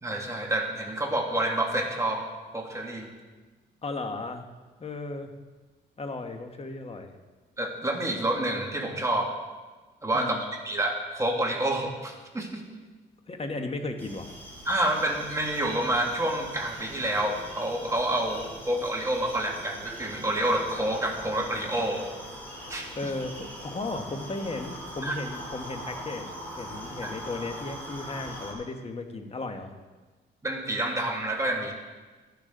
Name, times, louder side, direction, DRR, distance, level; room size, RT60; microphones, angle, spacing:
voice 1, 0.0-2.2 2.5-3.1 7.6-9.3 10.0-10.4 10.6-12.6 14.7-22.0 22.7-23.1 25.0-25.1 27.0-27.1 30.4-31.7, right 1 dB, 15° right, 0 dB, 2.2 m, -28 dB
voice 2, 3.8-4.5 4.8-5.3 6.0-7.1 10.1-10.4 13.3-14.3 22.9-29.7, left 2 dB, 30° left, 5 dB, 1.3 m, -35 dB
sound 1, 14.0-28.5, equal, 10° left, 3.7 m, -42 dB
13.0 x 10.5 x 3.9 m, 1.3 s
cardioid pair, 90°, 20 cm